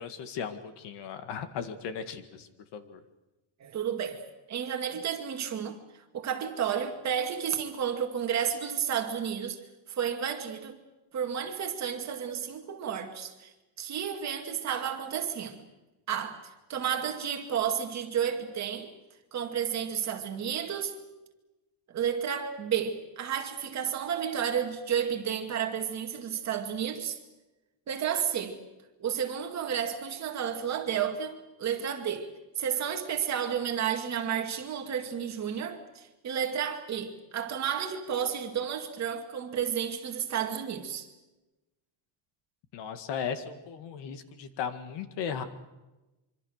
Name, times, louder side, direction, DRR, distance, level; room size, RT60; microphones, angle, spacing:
voice 1, 0.0-3.0 42.7-45.4, left 7 dB, 60° left, 2.0 m, -36 dB
voice 2, 3.6-5.8 6.1-9.6 9.9-10.8 11.1-13.5 13.8-15.6 16.1-18.9 19.3-20.9 21.9-27.2 27.9-28.6 29.0-41.1, right 8 dB, 35° right, 2.3 m, -32 dB
25.5 x 25.0 x 6.6 m
cardioid pair, 180°, 48 cm